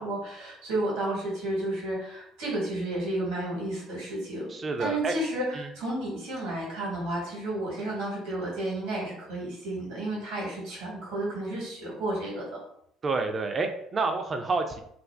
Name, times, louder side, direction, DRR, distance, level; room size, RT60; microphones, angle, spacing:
voice 1, 0.0-4.5 4.8-12.4, right 1 dB, 70° right, -4 dB, 1.2 m, -32 dB
voice 2, 4.5-5.2 5.5-5.7 13.0-14.8, right 3 dB, 35° right, 5 dB, 0.3 m, -29 dB
2.6 x 2.1 x 3.2 m, 0.72 s
figure-of-eight pair, 55°, 0 cm